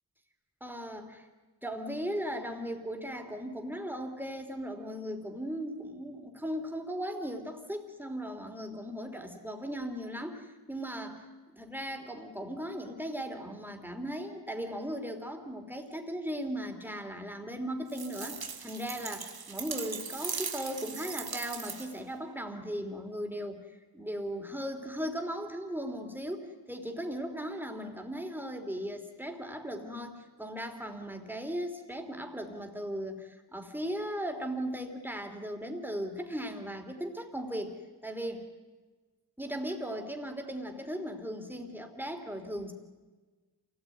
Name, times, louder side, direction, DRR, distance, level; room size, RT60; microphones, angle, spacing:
voice 1, 0.6-1.3 1.6-11.2 11.5-23.6 23.9-37.7 38.0-38.5 39.4-42.7, equal, 5° right, 3 dB, 3.4 m, -37 dB
sound 1, 17.9-22.1, right 5 dB, 65° right, 1.4 m, -39 dB
27.5 x 18.0 x 9.4 m, 1.3 s
wide cardioid pair, 85°, 39 cm